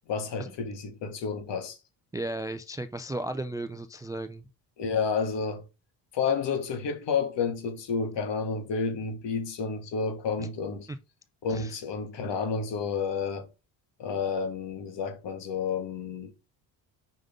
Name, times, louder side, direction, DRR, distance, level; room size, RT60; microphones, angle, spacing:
voice 1, 0.1-1.8 4.8-5.6 6.1-10.9 11.4-13.5 14.0-16.3, left 5 dB, 65° left, 1.7 m, -30 dB
voice 2, 2.1-4.4 10.4-10.5 10.9-11.0 11.5-11.8, right 1 dB, 10° right, 0.3 m, -35 dB
5.3 x 5.2 x 3.6 m
cardioid pair, 95°, 46 cm